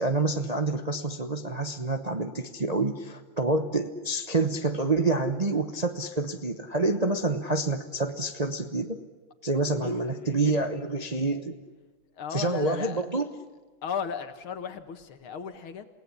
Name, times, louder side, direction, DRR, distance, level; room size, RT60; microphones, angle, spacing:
voice 1, 0.0-9.0 9.4-11.5 12.3-13.3, right 2 dB, 30° right, 7 dB, 0.7 m, -27 dB
voice 2, 9.8-10.7 12.2-13.1 13.8-15.9, left 6 dB, 80° left, 9 dB, 2.5 m, -35 dB
28.5 x 17.5 x 9.9 m, 1.3 s
omnidirectional pair, 2.3 m